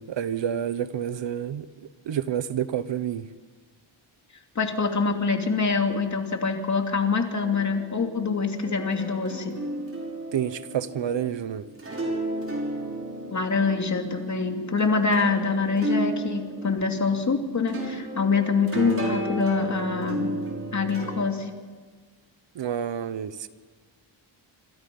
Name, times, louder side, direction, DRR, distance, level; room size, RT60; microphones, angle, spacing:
voice 1, 0.0-3.3 10.3-11.6 22.5-23.5, right 9 dB, 70° right, 1.1 m, -29 dB
voice 2, 4.5-9.6 13.3-20.4 20.7-21.5, left 4 dB, 35° left, 2.8 m, -25 dB
sound 1, 7.4-21.3, right 1 dB, 30° right, 6.0 m, -34 dB
27.0 x 26.5 x 5.5 m
wide cardioid pair, 140°, 46 cm